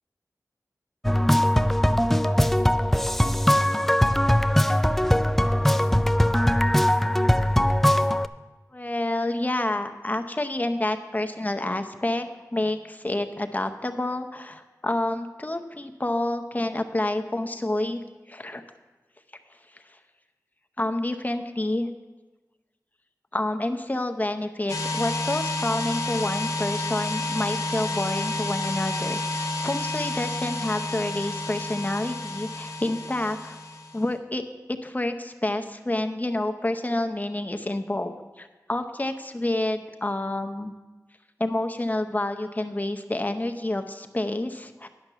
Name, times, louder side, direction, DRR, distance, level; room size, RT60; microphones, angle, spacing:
sound 1, 1.0-8.3, equal, 5° left, 0.3 m, -21 dB
voice 1, 8.7-18.0 18.3-18.6 20.8-21.9 23.3-33.6 33.9-34.4 34.7-40.7 41.4-44.9, left 1 dB, 25° left, 7 dB, 0.7 m, -28 dB
sound 2, 24.7-34.1, left 2 dB, 65° left, 1.1 m, -30 dB
10.5 x 5.9 x 6.8 m, 1.2 s
wide cardioid pair, 65°, 6 cm